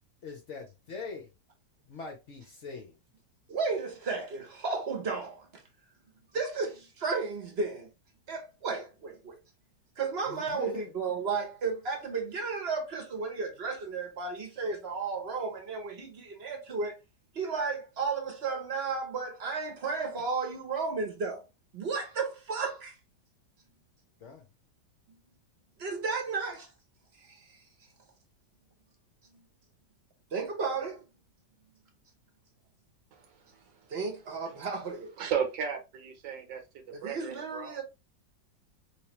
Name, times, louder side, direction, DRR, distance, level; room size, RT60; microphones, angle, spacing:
voice 1, 0.2-1.2 1.9-2.9 10.3-10.9 24.2-24.4, left 5 dB, 55° left, 0.9 m, -42 dB
voice 2, 3.5-5.6 6.3-7.9 8.3-9.4 10.0-17.0 17.3-21.4 21.7-23.0 25.1-25.2 25.8-26.7 27.2-27.6 29.3-29.4 30.3-31.0 33.9-35.1 36.9-37.8, right 4 dB, 45° right, 0.9 m, -33 dB
voice 3, 35.2-36.6 37.0-37.8, right 7 dB, 85° right, 1.6 m, -33 dB
3.3 x 3.1 x 3.0 m
omnidirectional pair, 1.9 m